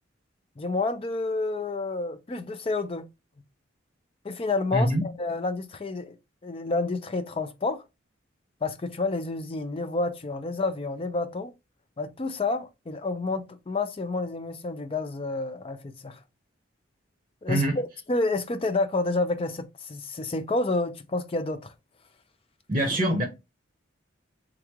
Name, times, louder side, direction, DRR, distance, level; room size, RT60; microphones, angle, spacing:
voice 1, 0.6-3.1 4.2-6.1 6.4-7.8 8.6-11.5 12.0-16.2 17.4-21.7, left 3 dB, 30° left, 0.4 m, -29 dB
voice 2, 4.7-5.0 17.5-17.8 22.7-23.2, right 1 dB, 25° right, 0.7 m, -24 dB
3.5 x 3.2 x 3.5 m
head